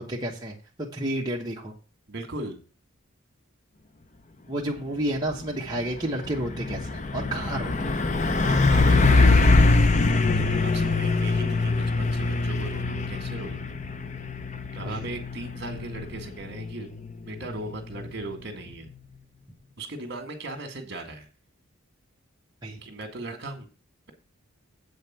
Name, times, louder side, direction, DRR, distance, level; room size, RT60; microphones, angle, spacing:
voice 1, 0.0-1.7 4.5-7.7 14.8-15.1 22.6-22.8, right 1 dB, 20° right, -3 dB, 1.2 m, -31 dB
voice 2, 2.1-2.6 8.4-9.6 10.3-13.8 14.7-16.9 17.3-18.9 19.8-21.3 22.8-23.7, right 2 dB, 50° right, 6 dB, 1.9 m, -37 dB
Truck, 5.2-5.4 5.8-18.3, left 3 dB, 35° left, 0.6 m, -23 dB
8.0 x 5.2 x 7.3 m, 0.36 s
head